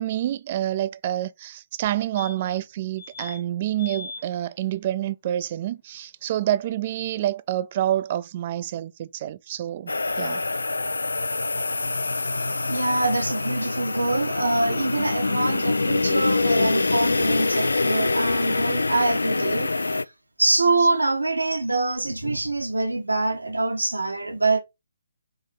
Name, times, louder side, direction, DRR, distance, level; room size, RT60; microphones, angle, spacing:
voice 1, 0.0-9.9 10.2-10.4, right 12 dB, 30° right, 0.4 m, -27 dB
sound 1, 1.8-1.9 2.2-2.6 3.0-3.4 3.8-4.2 6.6-6.7 6.9-7.0, left 3 dB, 20° left, 1.1 m, -39 dB
sound 2, 9.9-20.0, left 3 dB, 65° left, 0.4 m, -25 dB
voice 2, 12.7-19.7 20.4-24.6, right 2 dB, 75° right, 1.1 m, -24 dB
4.9 x 3.7 x 5.2 m
figure-of-eight pair, 140°, 0 cm